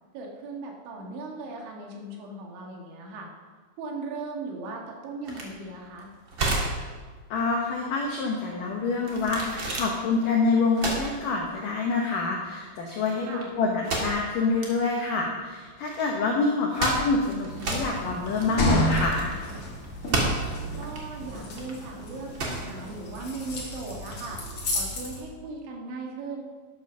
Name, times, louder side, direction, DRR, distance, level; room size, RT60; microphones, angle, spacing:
voice 1, 0.1-3.3 3.8-6.1 13.2-13.5 20.8-24.4 24.7-26.4, right 3 dB, 75° right, 0 dB, 4.0 m, -38 dB
sound 1, 5.3-23.8, right 2 dB, 60° right, 1.2 m, -33 dB
voice 2, 7.3-19.3, left 3 dB, 80° left, 0 dB, 1.9 m, -26 dB
sound 2, 17.5-25.2, equal, 40° left, 2.2 m, -31 dB
11.0 x 8.6 x 6.3 m, 1.5 s
omnidirectional pair, 5.5 m